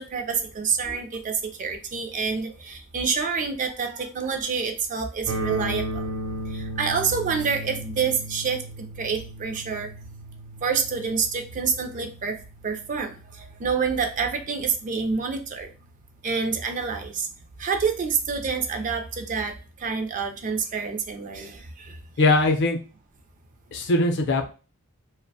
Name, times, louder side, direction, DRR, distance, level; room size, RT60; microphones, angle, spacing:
voice 1, 0.0-6.1 6.5-9.9 10.6-12.4 12.6-15.7 16.2-17.3 17.6-19.5 19.8-22.3, right 5 dB, 35° right, 6 dB, 0.4 m, -27 dB
sound 1, 5.3-15.2, right 1 dB, 75° right, 0.8 m, -36 dB
voice 2, 22.2-22.8 23.7-24.5, left 2 dB, 55° left, 5 dB, 0.5 m, -20 dB
2.4 x 2.1 x 2.6 m, 0.34 s
head